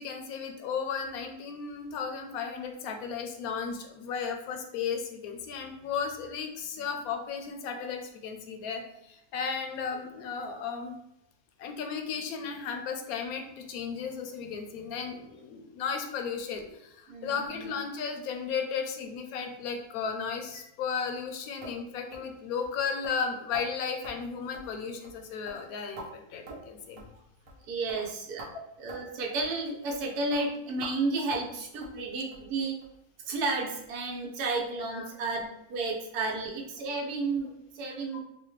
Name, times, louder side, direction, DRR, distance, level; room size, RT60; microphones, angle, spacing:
voice 1, 0.0-11.0 11.6-27.0 34.8-35.1 38.1-38.2, left 6 dB, 75° left, 5 dB, 1.0 m, -35 dB
voice 2, 17.1-17.7 27.6-28.5 28.8-32.8 33.2-38.2, right 3 dB, 80° right, 0 dB, 1.2 m, -32 dB
sound 1, 21.6-21.8 22.1-22.3 22.6-22.7 23.0-23.2 23.5-23.7 24.0-24.2 24.5-24.8 25.0-25.2 25.5-26.1 26.5-26.7 27.0-27.1 27.5-27.6 27.9-28.0 28.4-28.5 28.9-29.0 29.4-29.5 29.9-30.0 30.3-30.4 30.8-30.9 31.3-31.5 31.8-32.0 32.3-32.5 32.8-32.9 33.3-33.4 33.8-33.9, right 2 dB, 55° right, 0.8 m, -45 dB
4.1 x 2.1 x 3.1 m, 0.83 s
omnidirectional pair, 1.6 m